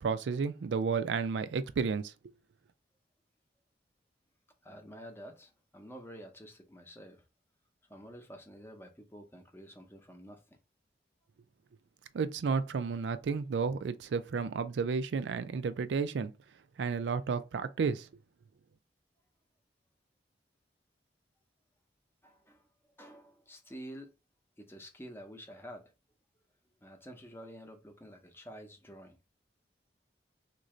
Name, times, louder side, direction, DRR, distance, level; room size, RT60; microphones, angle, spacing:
voice 1, 0.0-2.3 12.1-16.3 16.8-18.1, right 5 dB, 90° right, 0.4 m, -32 dB
voice 2, 4.6-7.2 7.9-10.4 22.2-22.6 23.0-24.1 24.6-25.9 26.8-29.2, equal, 15° left, 0.7 m, -49 dB
3.7 x 2.6 x 3.1 m
head